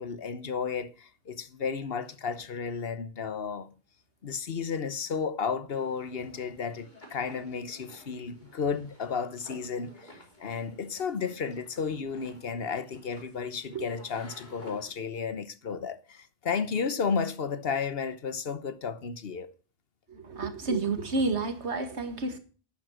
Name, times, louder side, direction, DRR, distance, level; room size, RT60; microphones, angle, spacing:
voice 1, 0.0-3.7 4.2-19.5, left 5 dB, 60° left, 1.2 m, -33 dB
sound 1, 5.7-14.9, left 1 dB, 45° left, 3.5 m, -53 dB
voice 2, 20.1-22.4, right 3 dB, 85° right, 2.1 m, -30 dB
11.5 x 9.2 x 6.4 m
omnidirectional pair, 1.1 m